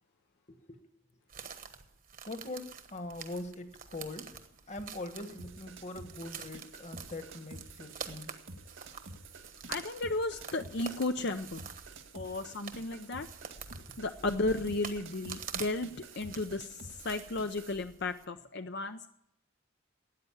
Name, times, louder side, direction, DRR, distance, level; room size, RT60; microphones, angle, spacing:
sound 1, 1.3-18.2, right 6 dB, 40° right, 1.2 m, -47 dB
voice 1, 2.3-4.3 4.7-8.3 13.8-13.9, left 2 dB, 35° left, 8 dB, 1.4 m, -42 dB
sound 2, 5.4-17.8, right 2 dB, 65° right, 1.8 m, -50 dB
voice 2, 9.7-11.6 12.1-13.3 14.0-15.9 16.2-19.1, left 2 dB, 55° left, 7 dB, 0.6 m, -34 dB
13.5 x 9.3 x 10.0 m, 0.77 s
head